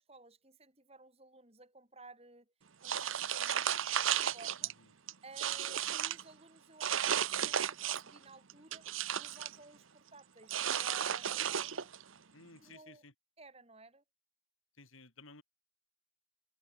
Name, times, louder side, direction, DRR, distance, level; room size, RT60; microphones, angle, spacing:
voice 1, 0.0-2.5 2.8-4.7 5.2-12.0 12.6-13.0 13.4-14.0, right 3 dB, 30° right, 6.1 m, -56 dB
sound 1, 2.8-4.7 5.1-6.2 6.8-8.2 8.5-9.6 10.5-12.0, right 9 dB, 80° right, 1.1 m, -34 dB
voice 2, 12.3-13.1 14.8-15.4, left 3 dB, 80° left, 6.1 m, -55 dB
head